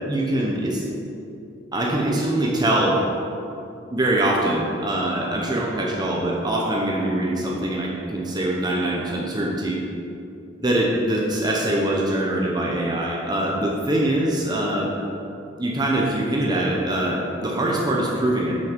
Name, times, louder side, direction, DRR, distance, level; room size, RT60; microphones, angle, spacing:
voice 1, 0.0-0.8 1.7-3.0 3.9-9.8 10.6-14.9 15.6-18.6, right 1 dB, 20° right, -2 dB, 0.9 m, -23 dB
7.6 x 6.5 x 5.2 m, 2.6 s
head